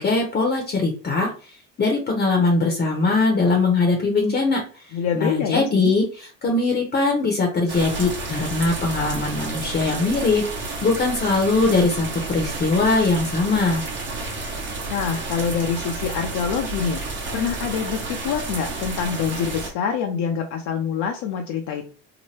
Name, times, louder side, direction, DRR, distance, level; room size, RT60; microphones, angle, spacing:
voice 1, 0.0-1.3 1.8-4.6 5.1-13.8, left 3 dB, 30° left, 1 dB, 0.7 m, -21 dB
voice 2, 4.9-5.9 14.9-17.0 17.3-21.9, left 7 dB, 65° left, 3 dB, 0.6 m, -25 dB
sound 1, 7.7-19.7, right 3 dB, 35° right, 0.9 m, -31 dB
2.8 x 2.1 x 3.1 m, 0.39 s
cardioid pair, 110°, 32 cm